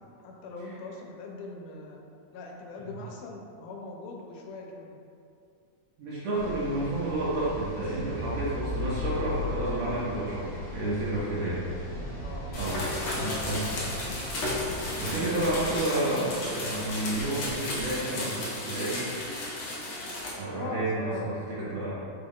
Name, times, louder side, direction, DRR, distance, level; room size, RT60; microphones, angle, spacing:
voice 1, 0.2-2.0 2.3-5.0 11.3-11.7 12.2-12.5 20.5-21.9, left 3 dB, 85° left, 0 dB, 2.1 m, -41 dB
voice 2, 6.0-11.7 12.5-12.8 13.0-13.8 15.0-19.1 20.4-21.9, right 2 dB, 70° right, -8 dB, 1.7 m, -30 dB
sound 1, 6.4-15.8, equal, 55° left, 0.9 m, -40 dB
sound 2, 7.9-9.8, left 6 dB, 90° right, 2.3 m, -34 dB
sound 3, 12.5-20.3, left 1 dB, 70° left, 1.4 m, -34 dB
5.0 x 2.3 x 3.5 m, 2.4 s
omnidirectional pair, 3.6 m